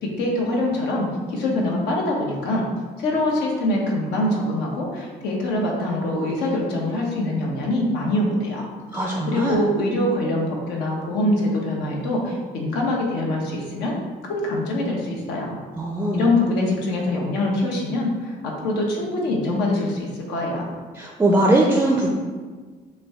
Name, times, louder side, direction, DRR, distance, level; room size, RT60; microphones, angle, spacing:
voice 1, 0.0-2.7 3.0-8.7 9.0-13.9 14.3-15.6 16.1-20.7, left 1 dB, 90° left, -1 dB, 1.0 m, -24 dB
voice 2, 8.9-9.6 15.8-16.3 21.0-22.1, right 1 dB, 10° right, 0 dB, 0.4 m, -20 dB
5.8 x 2.2 x 3.5 m, 1.5 s
cardioid pair, 110°, 17 cm